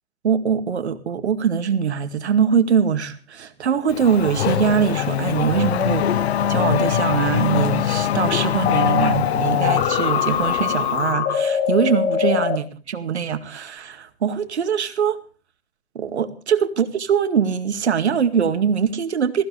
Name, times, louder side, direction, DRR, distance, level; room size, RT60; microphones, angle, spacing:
voice 1, 0.2-6.1 6.5-15.2 15.9-19.4, right 7 dB, 90° right, 8 dB, 2.2 m, -22 dB
Race car auto racing / Accelerating revving vroom, 3.9-11.1, left 9 dB, 70° left, 1.1 m, -23 dB
sound 1, 8.7-12.6, left 8 dB, 25° left, 1.8 m, -22 dB
20.5 x 15.5 x 3.4 m, 0.36 s
hypercardioid pair, 135°, 33 cm